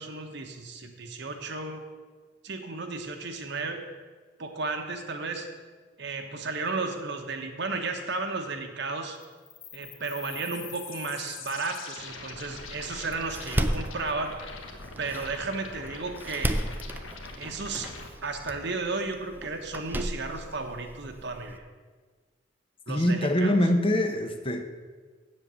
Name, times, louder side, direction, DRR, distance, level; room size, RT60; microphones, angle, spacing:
voice 1, 0.0-1.8 2.4-3.8 4.4-5.5 6.0-9.2 9.7-14.4 15.0-16.6 17.4-17.9 18.2-21.7 22.9-23.6, right 3 dB, 55° right, 5 dB, 1.0 m, -33 dB
sound 1, 9.2-18.1, left 4 dB, 75° left, 1.3 m, -43 dB
Door, 12.6-21.6, right 1 dB, 10° right, 0.4 m, -35 dB
voice 2, 22.9-24.6, left 1 dB, 25° left, 6 dB, 0.8 m, -24 dB
7.6 x 7.3 x 8.0 m, 1.4 s
head